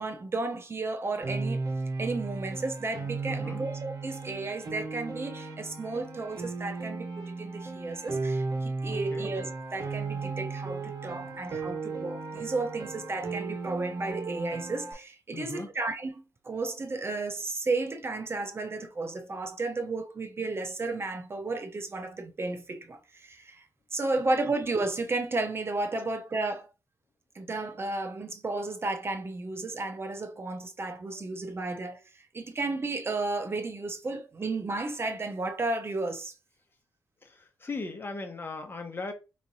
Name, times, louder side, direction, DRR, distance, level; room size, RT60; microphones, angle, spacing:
voice 1, 0.0-1.6 2.0-23.6 23.9-26.7 27.3-36.3, right 3 dB, 35° right, 0.6 m, -33 dB
Piano, 1.2-14.9, right 3 dB, 55° right, 1.5 m, -35 dB
voice 2, 3.2-3.6 8.9-9.3 11.0-11.5 15.3-15.7 37.2-39.1, left 3 dB, 30° left, 1.0 m, -39 dB
4.9 x 3.1 x 2.7 m
cardioid pair, 80°, 7 cm